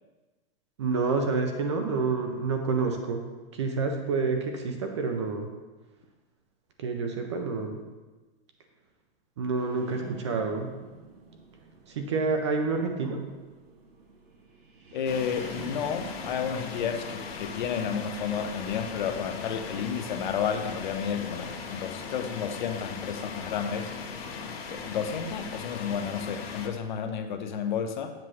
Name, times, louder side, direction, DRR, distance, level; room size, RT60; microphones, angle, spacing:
voice 1, 0.8-3.2 3.5-5.5 6.8-7.8 9.4-10.7 11.9-13.2, right 4 dB, 30° right, 4 dB, 0.4 m, -28 dB
sound 1, 9.6-16.4, right 3 dB, 80° right, 1.5 m, -48 dB
voice 2, 14.9-23.9 24.7-28.1, left 7 dB, 50° left, 6 dB, 0.7 m, -31 dB
sound 2, 15.1-26.7, left 5 dB, 85° left, 1.0 m, -38 dB
7.6 x 3.1 x 6.1 m, 1.2 s
supercardioid pair, 170°, 30 cm